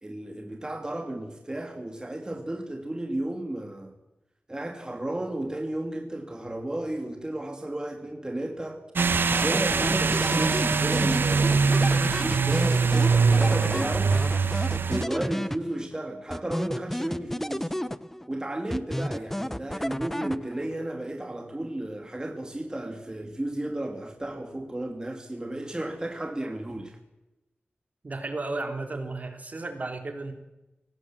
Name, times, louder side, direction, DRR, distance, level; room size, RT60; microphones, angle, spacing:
voice 1, 0.0-3.9 4.5-8.8 9.4-14.1 14.9-17.7 18.3-27.0, right 1 dB, 20° right, 4 dB, 2.5 m, -33 dB
sound 1, 9.0-15.1, right 5 dB, 75° right, 1.0 m, -23 dB
sound 2, 9.1-15.9 16.3-18.3 18.7-20.7, left 1 dB, 10° left, 0.8 m, -32 dB
voice 2, 28.0-30.3, right 2 dB, 45° right, 6 dB, 3.4 m, -33 dB
24.0 x 19.0 x 7.6 m, 0.96 s
wide cardioid pair, 105°, 4 cm